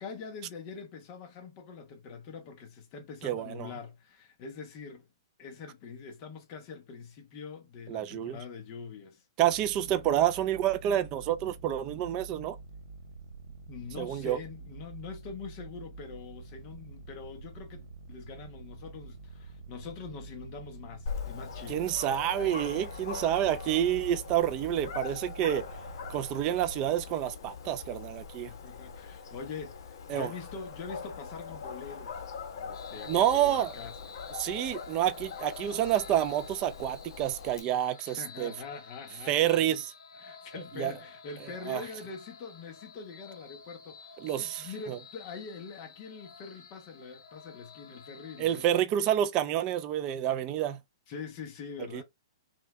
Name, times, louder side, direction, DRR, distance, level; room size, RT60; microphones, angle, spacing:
voice 1, 0.0-5.1 5.4-9.2 13.7-21.8 28.4-34.3 38.0-39.8 40.2-48.8 51.1-52.0, left 5 dB, 30° left, 0.9 m, -44 dB
voice 2, 3.2-3.7 7.9-8.4 9.4-12.6 14.0-14.4 21.7-25.7 26.1-28.5 30.1-30.3 33.1-33.7 34.4-38.5 39.3-39.9 40.7-40.9 41.7-41.8 44.2-45.0 48.4-50.8 51.9-52.0, right 11 dB, 25° right, 0.5 m, -28 dB
sound 1, 9.5-26.8, right 3 dB, 80° right, 1.6 m, -47 dB
Dog, 21.1-37.6, left 5 dB, 60° left, 1.3 m, -42 dB
sound 2, 32.7-48.7, left 5 dB, 75° left, 1.1 m, -50 dB
5.5 x 2.3 x 3.0 m
hypercardioid pair, 160°, 3 cm